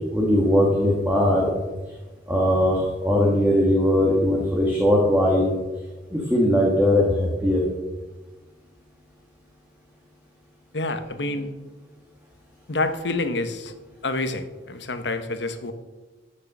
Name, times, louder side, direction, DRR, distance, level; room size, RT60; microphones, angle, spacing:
voice 1, 0.1-1.5 2.3-5.5 6.1-7.6, left 1 dB, 10° right, -2 dB, 1.7 m, -20 dB
voice 2, 10.7-11.5 12.7-13.7 14.0-15.7, left 2 dB, 80° left, 9 dB, 1.1 m, -27 dB
13.5 x 6.6 x 6.0 m, 1.2 s
head